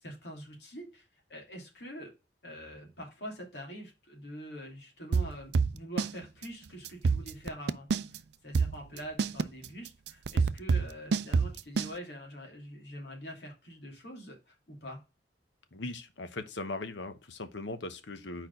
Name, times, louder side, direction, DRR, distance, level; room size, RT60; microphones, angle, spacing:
voice 1, 0.0-2.1 2.4-15.0, equal, 65° left, 2.5 m, -45 dB
sound 1, 5.1-6.1 6.4-6.5 6.9-8.2 8.5-11.9, right 4 dB, 65° right, 0.4 m, -27 dB
voice 2, 15.7-18.5, left 2 dB, 90° left, 1.0 m, -39 dB
4.7 x 4.4 x 5.2 m
head